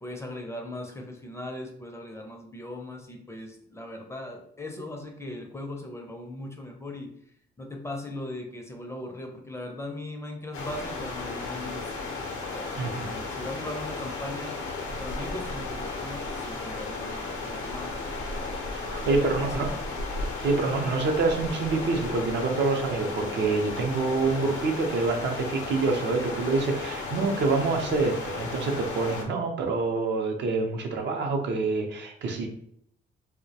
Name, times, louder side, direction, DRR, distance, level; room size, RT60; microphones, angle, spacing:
voice 1, 0.0-7.1 7.6-11.9 12.5-14.6 15.0-17.9 19.0-19.8, left 1 dB, 15° left, 1 dB, 0.4 m, -39 dB
sound 1, 10.5-29.2, left 3 dB, 85° left, 0.6 m, -34 dB
voice 2, 12.8-13.1 18.8-19.7 20.4-32.5, right 3 dB, 65° right, 3 dB, 0.5 m, -26 dB
2.3 x 2.1 x 2.7 m, 0.69 s
cardioid pair, 90°, 20 cm